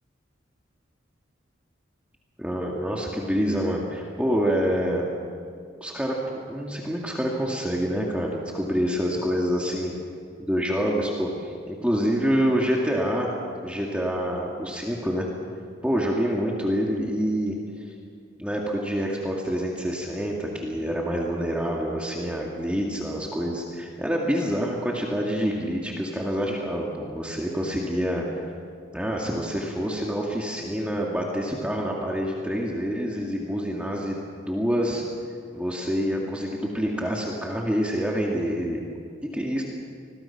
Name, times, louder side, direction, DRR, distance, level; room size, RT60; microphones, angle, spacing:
voice 1, 2.4-5.1 5.8-9.9 10.4-13.3 13.6-15.3 15.8-17.6 18.4-28.5 28.9-35.0 35.5-38.8 39.3-39.6, equal, 5° right, -2 dB, 2.1 m, -27 dB
29.0 x 22.0 x 5.9 m, 2.4 s
head